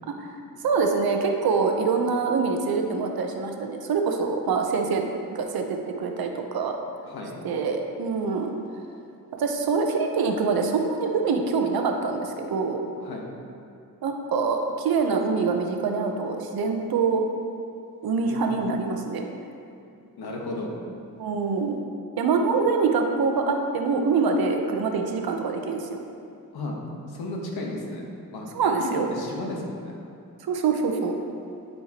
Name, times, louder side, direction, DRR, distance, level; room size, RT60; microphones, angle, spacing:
voice 1, 0.6-5.0 5.3-6.7 7.4-8.5 9.3-12.8 14.0-17.2 18.0-19.3 21.2-21.8 22.2-26.0 28.5-29.1 30.5-31.2, right 4 dB, 75° right, 4 dB, 0.8 m, -25 dB
voice 2, 7.0-7.3 13.0-13.3 18.3-18.5 20.2-20.7 26.5-26.8 27.1-28.5 28.9-30.0, left 2 dB, 85° left, -1 dB, 1.2 m, -34 dB
11.5 x 4.4 x 2.9 m, 2.5 s
cardioid pair, 100°, 37 cm